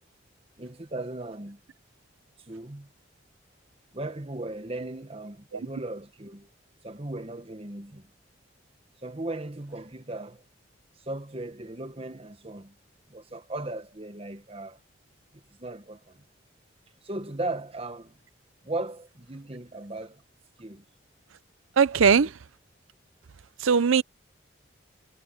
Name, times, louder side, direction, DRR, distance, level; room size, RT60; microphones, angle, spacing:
voice 1, 0.6-1.6 2.4-2.9 3.9-6.5 6.8-8.1 9.0-10.4 11.0-12.7 13.1-14.8 15.3-16.3 17.0-18.2 18.6-20.2 20.6-20.8 22.1-22.3, right 2 dB, 30° right, 1.3 m, -37 dB
voice 2, 21.8-22.4 23.6-24.0, right 6 dB, 90° right, 0.5 m, -20 dB
head